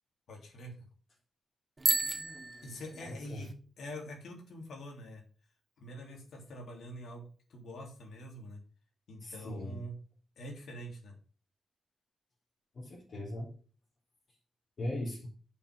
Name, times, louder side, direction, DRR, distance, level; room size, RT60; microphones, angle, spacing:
voice 1, 0.3-0.8 2.6-5.2 5.8-7.2 7.5-8.6 9.1-9.9 10.4-11.1, equal, 80° left, 1 dB, 3.2 m, -45 dB
Bicycle bell, 1.8-3.5, right 3 dB, 25° right, 1.2 m, -33 dB
voice 2, 3.0-3.5 9.2-9.8 12.7-13.5 14.8-15.3, left 1 dB, 55° left, -7 dB, 3.8 m, -39 dB
6.8 x 5.7 x 6.1 m, 0.40 s
cardioid pair, 100°, 0 cm